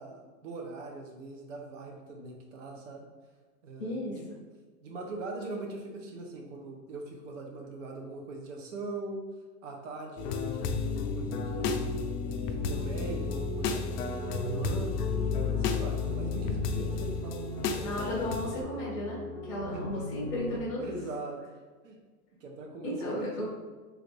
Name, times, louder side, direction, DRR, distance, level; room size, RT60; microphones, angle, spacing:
voice 1, 0.0-3.1 3.6-4.3 4.8-9.2 9.6-11.8 12.2-18.0 19.7-20.1 20.5-21.4 21.8-22.0 22.4-23.5, right 2 dB, 55° right, 1 dB, 0.8 m, -41 dB
voice 2, 3.8-4.4 16.7-16.8 17.8-20.8 22.8-23.5, left 1 dB, 20° left, -13 dB, 0.3 m, -34 dB
sound 1, 10.2-18.6, left 5 dB, 80° left, 0.6 m, -32 dB
sound 2, 12.6-20.6, right 2 dB, 15° right, 0.7 m, -39 dB
3.3 x 2.5 x 3.2 m, 1.4 s
supercardioid pair, 165°, 47 cm